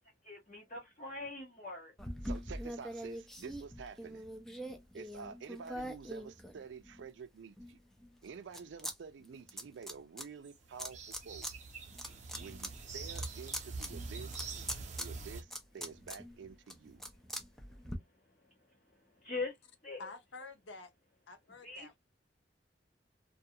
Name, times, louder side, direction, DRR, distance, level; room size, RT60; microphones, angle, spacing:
voice 1, 0.2-1.9 18.4-18.5 18.8-19.6 19.8-20.1 21.6-21.9, left 3 dB, 40° left, 0.9 m, -42 dB
sound 1, 2.0-7.1 7.6-9.0 9.2-10.3 10.8-11.5 11.9-18.0, equal, ahead, 0.5 m, -43 dB
voice 2, 2.2-4.2 4.9-7.8 8.2-11.0 11.2-11.5 12.4-14.5 15.0-17.0, right 6 dB, 85° right, 0.4 m, -49 dB
sound 2, 10.4-15.4, right 4 dB, 40° right, 0.6 m, -44 dB
voice 3, 20.0-20.9 21.3-21.9, left 3 dB, 90° left, 0.6 m, -49 dB
2.3 x 2.3 x 2.7 m
head